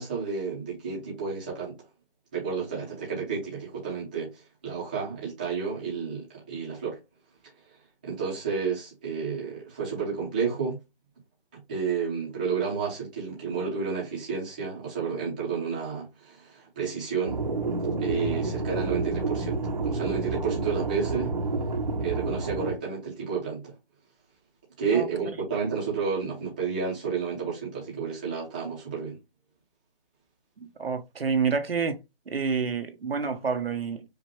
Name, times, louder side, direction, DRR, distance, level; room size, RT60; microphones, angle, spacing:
voice 1, 0.0-1.7 2.3-7.0 8.0-10.8 11.5-17.4 18.0-21.3 22.0-23.7 24.8-29.2, right 5 dB, 10° right, 0.8 m, -31 dB
sound 1, 17.2-22.8, right 3 dB, 50° right, 0.9 m, -29 dB
voice 2, 30.8-32.0 32.3-34.0, right 5 dB, 80° right, 1.2 m, -28 dB
5.1 x 2.5 x 3.1 m
hypercardioid pair, 170°, 29 cm